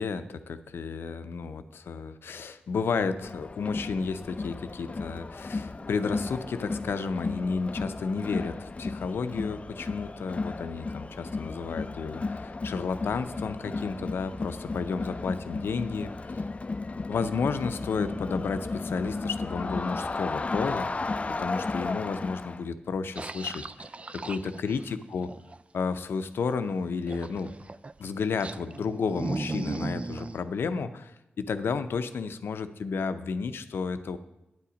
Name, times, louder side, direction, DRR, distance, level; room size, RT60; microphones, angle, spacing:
voice 1, 0.0-16.3 17.1-20.9 21.4-25.3 25.7-27.5 28.0-34.2, left 5 dB, 85° left, 10 dB, 0.5 m, -32 dB
Crowd, 3.2-22.6, left 3 dB, 35° left, 0.4 m, -34 dB
sound 1, 23.1-25.6 27.1-28.0 28.4-30.4, right 3 dB, 35° right, 0.4 m, -36 dB
9.2 x 8.5 x 5.1 m, 0.93 s
cardioid pair, 60°, 4 cm